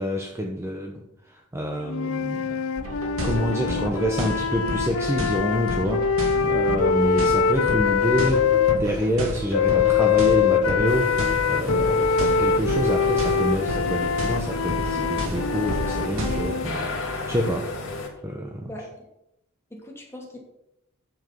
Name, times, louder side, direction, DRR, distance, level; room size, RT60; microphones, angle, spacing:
voice 1, 0.0-2.6 3.2-17.7 18.2-18.7, equal, 15° right, 1 dB, 0.9 m, -27 dB
sound 1, 1.9-8.8 9.5-16.7, left 6 dB, 90° left, 0.7 m, -23 dB
sound 2, 2.8-16.4, equal, 70° right, 2.2 m, -31 dB
sound 3, 10.9-18.1, left 2 dB, 65° left, 2.2 m, -34 dB
voice 2, 18.6-19.1 19.7-20.4, left 1 dB, 10° left, -2 dB, 2.8 m, -40 dB
9.4 x 7.3 x 5.4 m, 0.84 s
head